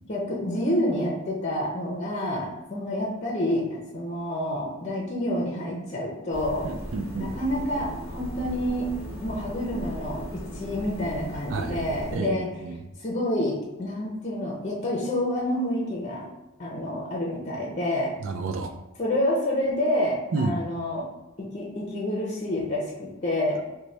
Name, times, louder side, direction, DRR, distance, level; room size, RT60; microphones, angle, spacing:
voice 1, 0.0-6.7 7.2-8.9 9.2-12.5 13.0-16.3 16.6-18.1 19.0-21.1 21.4-23.6, left 1 dB, 35° left, -3 dB, 0.6 m, -28 dB
sound 1, 6.3-12.2, equal, 10° right, 1.4 m, -37 dB
voice 2, 6.6-7.3 11.5-12.3 12.6-12.7 18.2-18.7 20.3-20.6, right 3 dB, 80° right, 6 dB, 0.4 m, -30 dB
4.0 x 2.2 x 3.2 m, 1.0 s
head